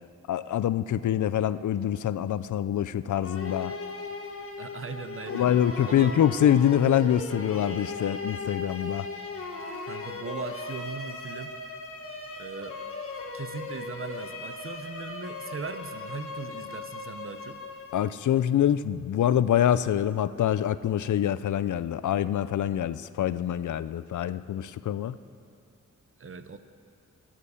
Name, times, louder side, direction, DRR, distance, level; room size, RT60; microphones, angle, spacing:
voice 1, 0.3-3.7 5.3-9.1 17.9-25.2, left 10 dB, 80° left, 15 dB, 0.5 m, -25 dB
sound 1, 3.2-18.3, left 3 dB, 45° left, 1.6 m, -38 dB
voice 2, 4.6-5.5 5.9-6.2 9.8-11.5 12.4-12.8 13.3-17.6 26.2-26.6, right 5 dB, 45° right, 10 dB, 0.8 m, -39 dB
19.0 x 7.5 x 8.3 m, 2.4 s
wide cardioid pair, 125°, 30 cm